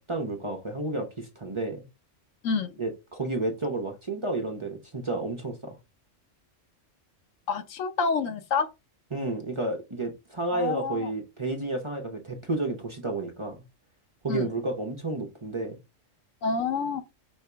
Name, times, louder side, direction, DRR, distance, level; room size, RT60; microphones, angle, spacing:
voice 1, 0.0-1.9 2.8-5.8 9.1-13.6 14.2-15.8, right 2 dB, 30° right, 0.7 m, -31 dB
voice 2, 2.4-2.8 7.5-8.7 10.5-11.1 14.3-14.5 16.4-17.0, left 5 dB, 80° left, 1.1 m, -28 dB
5.4 x 2.8 x 3.3 m
omnidirectional pair, 1.3 m